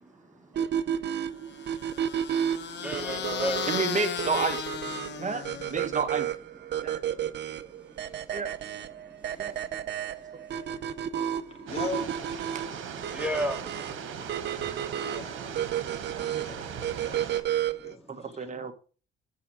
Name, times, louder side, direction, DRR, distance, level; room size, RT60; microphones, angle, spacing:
voice 1, 0.0-0.4 0.8-1.0 2.8-3.7 5.0-5.3 7.1-8.3 9.4-10.2 10.6-10.8 11.2-11.7 13.1-14.0 16.5-16.9 17.3-17.4 18.2-18.6, equal, 5° right, 1.9 m, -38 dB
sound 1, 0.6-18.0, right 10 dB, 60° right, 0.7 m, -32 dB
sound 2, 1.5-6.0, left 9 dB, 60° left, 1.0 m, -36 dB
voice 2, 3.7-4.7 5.2-5.4 5.7-6.3 6.8-7.0 8.3-8.5 9.3-9.6 12.5-13.0 16.2-16.5 18.1-18.7, right 4 dB, 40° right, 1.7 m, -31 dB
voice 3, 11.5-12.1 12.4-12.6 15.0-15.4 16.4-16.6 17.0-18.5, left 4 dB, 30° left, 2.3 m, -40 dB
sound 3, 11.7-17.4, right 7 dB, 85° right, 1.7 m, -39 dB
8.4 x 7.1 x 4.9 m
cardioid pair, 90°, 20 cm